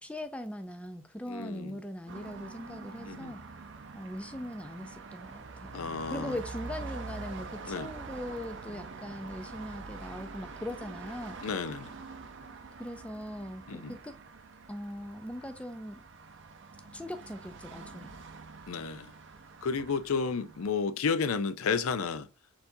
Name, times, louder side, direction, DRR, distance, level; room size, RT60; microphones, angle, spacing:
voice 1, 0.0-3.4 3.9-11.4 12.8-14.2 14.7-16.0 16.9-18.1, left 1 dB, 5° left, 0.4 m, -40 dB
voice 2, 1.3-1.8 3.0-3.3 5.7-6.4 7.7-7.9 11.4-12.0 13.7-14.0 18.7-19.1 19.6-22.3, left 5 dB, 75° left, 0.5 m, -32 dB
sound 1, 2.1-20.7, right 4 dB, 55° right, 0.5 m, -45 dB
4.4 x 4.1 x 2.6 m
head